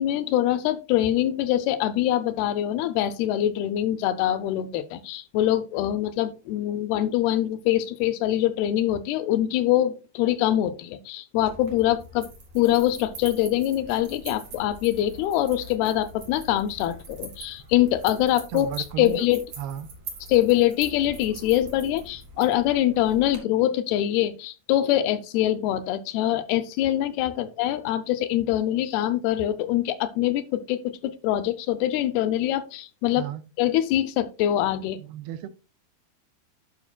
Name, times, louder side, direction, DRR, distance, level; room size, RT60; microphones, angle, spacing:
voice 1, 0.0-12.3 12.6-19.5 20.3-33.3 33.6-35.0, left 13 dB, 85° left, 10 dB, 2.6 m, -24 dB
sound 1, 11.3-23.4, right 3 dB, 50° right, 2.7 m, -44 dB
voice 2, 18.5-19.3 19.6-19.9 33.2-33.4 35.0-35.5, right 11 dB, 85° right, 9 dB, 2.5 m, -34 dB
12.0 x 5.8 x 2.2 m, 0.30 s
omnidirectional pair, 4.5 m